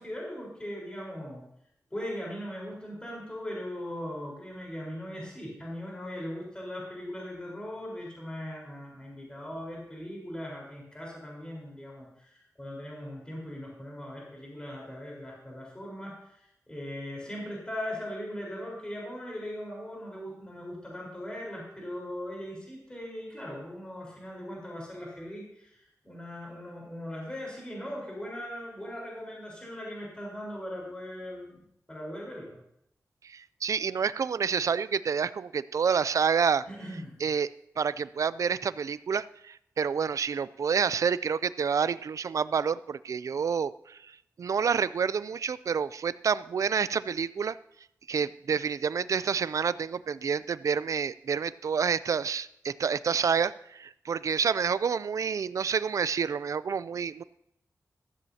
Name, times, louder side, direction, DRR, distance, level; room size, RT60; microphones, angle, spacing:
voice 1, 0.0-1.5 1.9-25.8 26.0-31.6 31.9-32.6 36.6-37.2, equal, 15° left, -3 dB, 4.2 m, -39 dB
voice 2, 33.2-36.6 37.2-37.5 37.8-44.0 44.4-47.6 48.1-57.2, right 6 dB, 65° right, 17 dB, 0.4 m, -28 dB
15.5 x 14.0 x 2.8 m, 0.76 s
wide cardioid pair, 150°, 6 cm